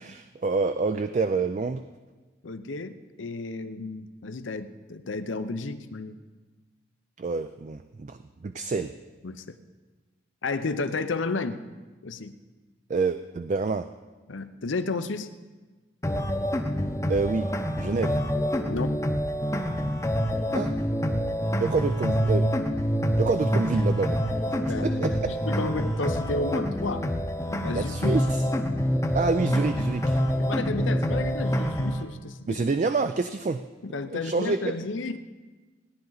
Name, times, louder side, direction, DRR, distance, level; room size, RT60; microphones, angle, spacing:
voice 1, 0.0-1.8 7.2-8.9 12.9-13.9 17.1-17.5 17.8-18.2 20.5-20.7 21.6-22.5 23.2-25.3 27.7-28.4 29.1-30.2 32.5-33.6 34.1-34.7, right 4 dB, 40° right, 9 dB, 0.3 m, -27 dB
voice 2, 2.4-6.2 9.2-9.6 10.4-11.6 12.0-12.3 14.3-15.3 18.7-19.0 24.7-27.1 27.6-28.2 30.4-32.6 33.8-35.2, left 3 dB, 85° left, 11 dB, 0.7 m, -32 dB
sound 1, 16.0-32.0, equal, 15° left, 0.7 m, -26 dB
17.5 x 10.5 x 4.0 m, 1.3 s
head